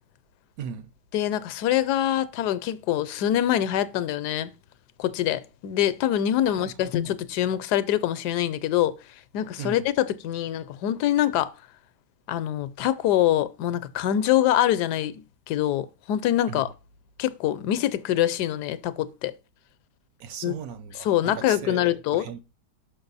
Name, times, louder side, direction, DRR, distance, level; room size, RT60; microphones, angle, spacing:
voice 1, 0.6-0.9 6.5-7.2 9.6-9.8 16.5-16.6 20.2-22.4, right 7 dB, 65° right, 1.1 m, -38 dB
voice 2, 1.1-4.5 5.0-9.0 9.3-11.5 12.3-16.7 17.2-19.3 20.4-20.5 21.0-22.4, left 12 dB, 75° left, 1.2 m, -24 dB
6.0 x 5.8 x 4.0 m
omnidirectional pair, 1.8 m